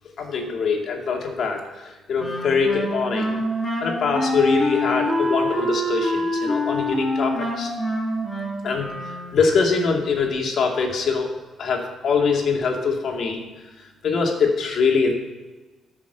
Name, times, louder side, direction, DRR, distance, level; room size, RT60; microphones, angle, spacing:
voice 1, 0.2-3.4 3.8-7.7 8.6-8.9 9.3-11.3 11.6-13.4 14.0-15.1, left 5 dB, 60° left, 1 dB, 2.4 m, -23 dB
Wind instrument woodwind instrument, 2.2-9.5, equal, 25° left, 4.5 m, -26 dB
14.0 x 6.1 x 6.8 m, 1.2 s
cardioid pair, 90°, 0 cm